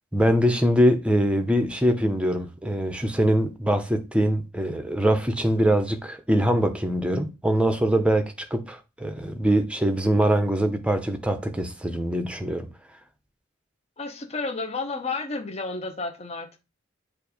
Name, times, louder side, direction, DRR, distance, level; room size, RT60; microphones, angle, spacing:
voice 1, 0.1-8.2 8.5-12.7, equal, 5° right, 0.7 m, -23 dB
voice 2, 14.0-16.7, left 3 dB, 30° left, 0.8 m, -31 dB
7.5 x 2.6 x 4.9 m
head